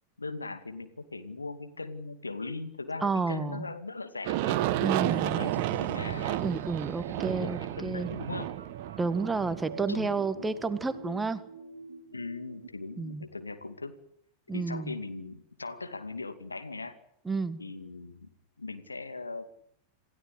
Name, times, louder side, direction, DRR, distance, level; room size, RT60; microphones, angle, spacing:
voice 1, 0.2-4.6 5.2-6.4 7.1-8.5 9.9-10.5 12.1-14.0 14.5-17.0 17.6-18.3 18.6-19.6, left 3 dB, 80° left, 9 dB, 2.4 m, -39 dB
voice 2, 3.0-3.7 4.8-5.4 6.4-8.1 9.0-11.4 13.0-13.3 14.5-14.9 17.3-17.6, right 4 dB, 10° right, 13 dB, 1.7 m, -31 dB
Aircraft, 4.2-10.9, right 14 dB, 45° right, 1.4 m, -32 dB
sound 1, 4.5-12.7, right 4 dB, 65° right, 2.1 m, -49 dB
28.0 x 15.5 x 8.5 m, 0.74 s
figure-of-eight pair, 90°, 0 cm